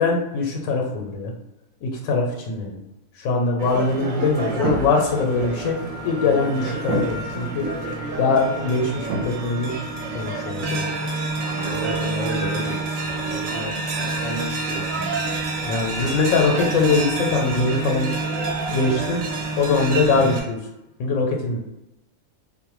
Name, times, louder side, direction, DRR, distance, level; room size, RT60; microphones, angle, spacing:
voice 1, 0.0-1.3 1.8-2.8 3.2-5.8 6.0-7.7 8.2-9.7 10.1-10.8 15.6-18.1 18.7-19.2 19.6-20.6 21.0-21.6, left 4 dB, 85° left, 0 dB, 1.0 m, -22 dB
sound 1, 3.6-20.4, right 3 dB, 75° right, 0.9 m, -28 dB
voice 2, 11.5-12.8 13.2-15.4 20.1-20.3, right 1 dB, 40° right, -7 dB, 0.6 m, -33 dB
2.4 x 2.1 x 3.0 m, 0.94 s
omnidirectional pair, 1.4 m